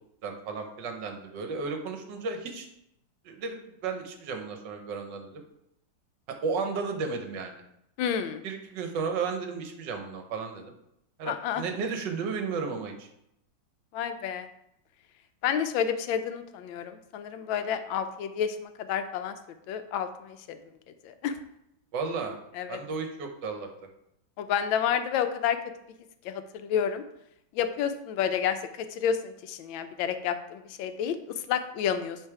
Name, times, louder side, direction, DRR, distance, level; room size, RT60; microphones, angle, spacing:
voice 1, 0.2-2.7 3.2-5.4 6.4-7.6 8.4-10.7 11.2-13.1 21.9-22.4 22.7-23.7, right 4 dB, 70° right, 5 dB, 1.4 m, -33 dB
voice 2, 8.0-8.4 11.3-11.6 13.9-14.5 15.4-19.3 19.7-20.6 21.0-21.4 22.6-22.8 24.4-25.6 26.2-27.0 27.5-31.2 31.5-32.2, left 8 dB, 85° left, 9 dB, 1.3 m, -30 dB
8.1 x 3.4 x 4.7 m, 0.80 s
omnidirectional pair, 2.1 m